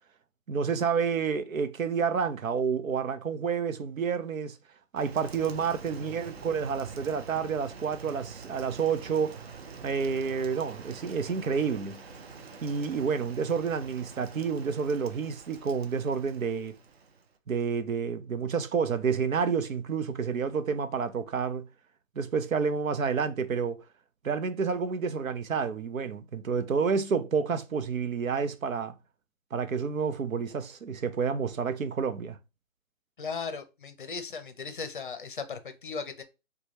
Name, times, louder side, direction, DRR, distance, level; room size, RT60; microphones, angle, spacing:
voice 1, 0.5-4.6 4.9-9.4 9.8-12.0 12.6-16.7 17.5-21.7 22.2-23.8 24.2-28.9 29.5-32.4, right 6 dB, 85° right, 0.7 m, -29 dB
Rain, 5.0-17.4, right 5 dB, 50° right, 0.7 m, -46 dB
voice 2, 33.2-36.2, left 5 dB, 40° left, 0.6 m, -37 dB
4.8 x 2.2 x 2.9 m
hypercardioid pair, 160°, 40 cm